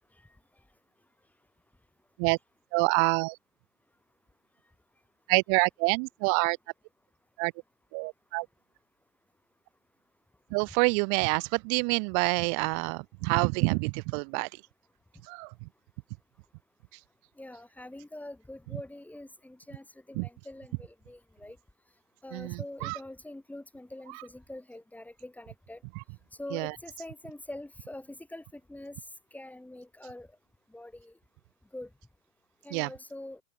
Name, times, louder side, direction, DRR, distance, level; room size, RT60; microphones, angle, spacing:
voice 1, 2.7-3.4 5.3-6.6 7.4-7.5 7.9-8.5 10.5-14.5 15.3-15.7 20.1-20.3 22.3-23.0 24.1-24.2 25.9-26.0 26.5-26.7 32.7-32.9, right 40 dB or more, 45° right, 1.1 m, -27 dB
voice 2, 17.4-21.6 22.2-25.8 26.4-29.0 29.3-30.3 30.7-31.1 31.7-31.9 32.6-33.4, left 1 dB, 5° left, 6.8 m, -44 dB
hypercardioid pair, 110°, 38 cm